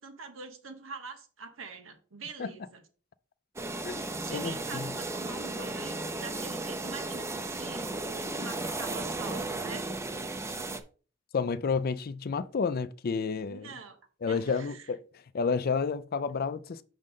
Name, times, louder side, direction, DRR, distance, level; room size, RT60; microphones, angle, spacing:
voice 1, 0.0-2.8 4.2-8.0 8.3-9.9 13.5-14.0 14.3-14.9, right 4 dB, 90° right, 1.3 m, -45 dB
sound 1, 3.6-10.8, right 2 dB, 15° right, 0.5 m, -35 dB
voice 2, 3.8-4.9 11.3-13.7 14.2-15.0 15.3-16.8, left 5 dB, 50° left, 0.4 m, -30 dB
6.2 x 5.4 x 3.7 m
head